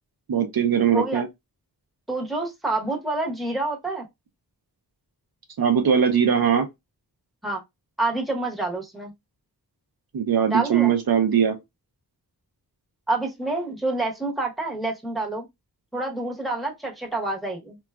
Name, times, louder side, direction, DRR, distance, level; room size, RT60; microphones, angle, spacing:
voice 1, 0.3-1.3 5.6-6.7 10.1-11.6, right 8 dB, 65° right, 0.6 m, -20 dB
voice 2, 0.9-1.2 2.1-4.1 7.4-7.6 8.0-9.1 10.5-10.9 13.1-15.5 15.9-17.8, right 2 dB, ahead, 0.9 m, -27 dB
3.8 x 2.3 x 2.2 m
wide cardioid pair, 60°, 40 cm